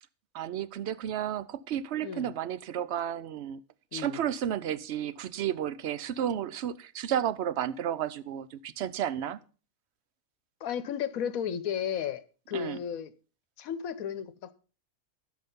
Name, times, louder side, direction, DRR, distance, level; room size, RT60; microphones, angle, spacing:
voice 1, 0.3-3.6 3.9-9.4 12.5-12.8, right 10 dB, 60° right, 0.8 m, -32 dB
voice 2, 10.6-12.2 12.5-13.1 13.6-14.5, left 8 dB, 80° left, 1.2 m, -33 dB
10.5 x 7.8 x 5.3 m
omnidirectional pair, 1.5 m